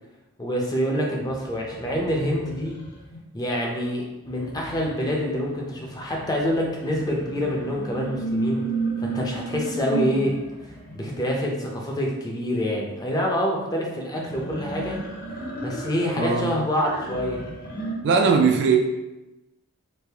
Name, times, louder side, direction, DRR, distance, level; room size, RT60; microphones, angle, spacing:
voice 1, 0.4-2.8 3.3-8.7 9.0-10.4 10.9-15.0 15.6-17.4, equal, 20° left, -1 dB, 0.5 m, -26 dB
sound 1, 1.3-3.2 4.2-11.1 14.1-17.9, right 2 dB, 45° left, 0.8 m, -33 dB
voice 2, 16.2-16.5 18.0-18.8, right 5 dB, 55° right, 3 dB, 0.4 m, -19 dB
3.3 x 2.5 x 3.4 m, 1.0 s
head